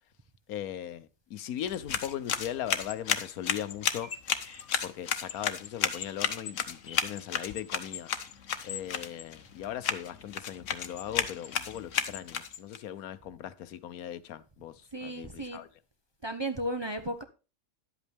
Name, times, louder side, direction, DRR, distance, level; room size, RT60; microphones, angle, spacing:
voice 1, 0.5-4.1 4.8-8.1 8.6-15.7, left 10 dB, 85° left, 1.2 m, -39 dB
sound 1, 1.6-12.8, left 8 dB, 65° left, 1.2 m, -33 dB
Bird vocalization bird call bird song, 3.9-10.2, left 3 dB, 40° left, 1.8 m, -54 dB
voice 2, 14.9-15.6 16.2-17.2, right 1 dB, 25° right, 0.7 m, -34 dB
11.0 x 8.1 x 3.4 m
omnidirectional pair, 1.5 m